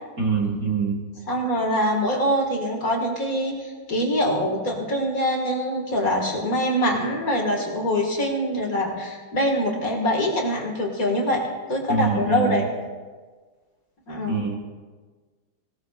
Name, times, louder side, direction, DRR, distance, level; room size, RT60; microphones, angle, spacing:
voice 1, 0.2-1.0 11.9-12.6 14.3-14.6, right 5 dB, 45° right, -1 dB, 1.7 m, -24 dB
voice 2, 1.3-12.6 14.1-14.4, equal, 40° left, 0 dB, 2.2 m, -24 dB
18.5 x 17.0 x 2.4 m, 1.4 s
omnidirectional pair, 2.4 m